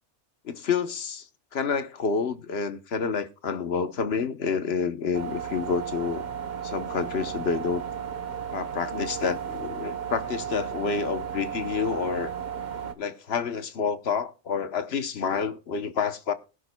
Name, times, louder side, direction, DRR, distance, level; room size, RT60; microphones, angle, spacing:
voice 1, 0.4-6.2 6.6-7.8 8.5-12.3 13.0-16.3, left 6 dB, 60° left, 1.1 m, -29 dB
sound 1, 5.1-12.9, right 8 dB, 45° right, 1.0 m, -34 dB
21.0 x 11.5 x 2.2 m
omnidirectional pair, 1.2 m